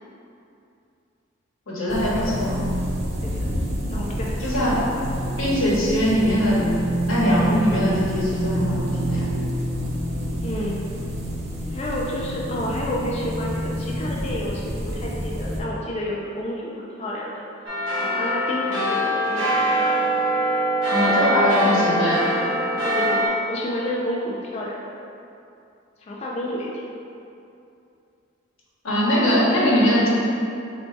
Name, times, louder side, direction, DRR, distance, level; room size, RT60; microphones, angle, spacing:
voice 1, 1.7-2.5 4.4-4.8 5.4-6.7 7.1-9.2 20.9-22.2 28.8-30.1, equal, 90° left, -6 dB, 1.1 m, -21 dB
sound 1, 1.9-15.6, equal, 35° right, 0.6 m, -28 dB
voice 2, 3.9-4.7 10.4-10.8 11.7-17.4 18.0-20.0 20.9-21.4 22.8-24.8 26.0-26.9, left 1 dB, 30° left, -4 dB, 0.4 m, -30 dB
sound 2, 17.7-23.3, equal, 75° right, 0.9 m, -23 dB
3.5 x 2.7 x 4.4 m, 2.6 s
head